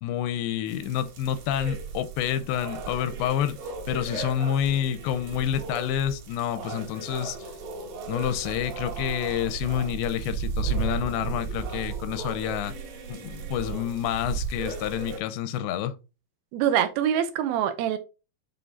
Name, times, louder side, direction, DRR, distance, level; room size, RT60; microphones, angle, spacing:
voice 1, 0.0-3.6 3.9-7.5 8.1-12.7 13.1-16.0, left 10 dB, 85° left, 2.8 m, -28 dB
sound 1, 0.7-15.2, right 5 dB, 60° right, 2.7 m, -35 dB
voice 2, 16.5-18.0, right 10 dB, 80° right, 2.3 m, -24 dB
8.6 x 3.4 x 3.8 m
omnidirectional pair, 5.0 m